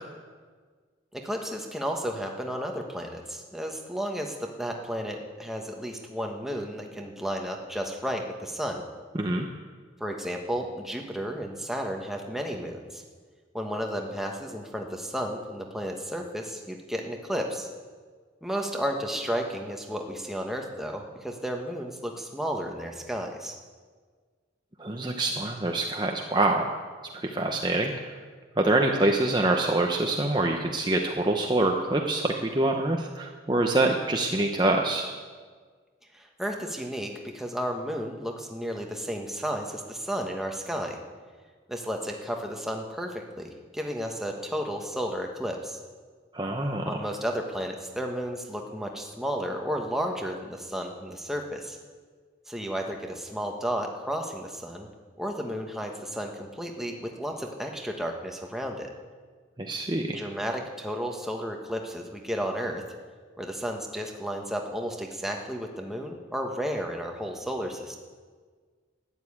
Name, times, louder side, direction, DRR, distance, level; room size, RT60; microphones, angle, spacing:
voice 1, 1.1-8.8 10.0-13.0 13.5-17.7 18.4-23.6 36.1-41.0 41.7-45.8 46.8-51.8 52.5-54.9 55.2-58.9 60.1-62.8 63.4-68.0, equal, ahead, 1 dB, 1.3 m, -33 dB
voice 2, 9.1-9.5 24.8-26.7 27.2-28.1 28.6-35.1 46.3-46.9 59.6-60.3, right 2 dB, 20° right, 2 dB, 0.8 m, -25 dB
12.5 x 10.5 x 8.6 m, 1.5 s
head